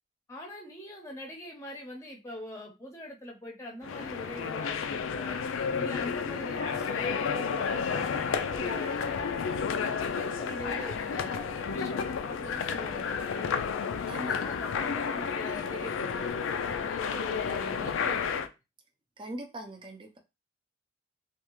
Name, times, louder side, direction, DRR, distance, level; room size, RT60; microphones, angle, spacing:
voice 1, 0.3-13.5 14.4-18.5, left 1 dB, 15° left, 1 dB, 0.7 m, -43 dB
sound 1, 3.8-18.5, left 6 dB, 85° left, 0.4 m, -31 dB
voice 2, 14.1-14.5 19.2-20.2, right 1 dB, 25° right, 4 dB, 0.5 m, -40 dB
3.3 x 2.4 x 3.0 m, 0.26 s
head